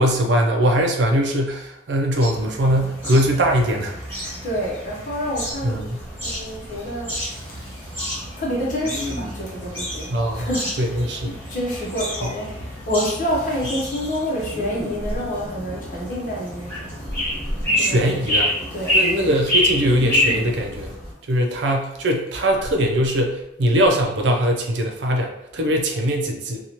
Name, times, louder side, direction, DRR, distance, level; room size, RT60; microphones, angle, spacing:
voice 1, 0.0-3.9 5.6-6.0 10.1-10.5 10.8-11.4 17.8-18.5 18.9-20.9 21.3-26.6, equal, 75° right, 2 dB, 0.5 m, -21 dB
sound 1, 2.2-21.1, left 1 dB, 10° left, 1.5 m, -28 dB
voice 2, 4.4-5.8 6.2-7.2 8.4-11.0 11.2-16.9 17.8-18.0 18.7-19.0, equal, 45° left, -4 dB, 0.8 m, -28 dB
Respiratory sounds, 6.1-6.8 7.1-8.1 8.8-9.6 13.2-13.8 14.4-15.5 17.0-17.7 18.7-19.4 19.9-20.7 22.5-23.4 23.8-24.0, equal, 15° right, 1.1 m, -35 dB
2.9 x 2.3 x 2.8 m, 0.85 s
head